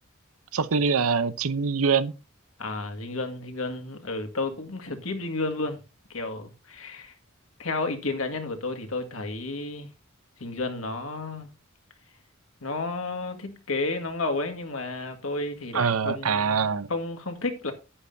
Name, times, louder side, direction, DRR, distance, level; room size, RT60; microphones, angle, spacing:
voice 1, 0.5-2.1 15.7-16.9, right 5 dB, 85° right, 0.7 m, -24 dB
voice 2, 2.6-5.8 6.1-7.2 7.6-9.9 10.4-11.5 12.6-17.7, left 3 dB, 70° left, 1.9 m, -32 dB
10.5 x 9.8 x 2.7 m
head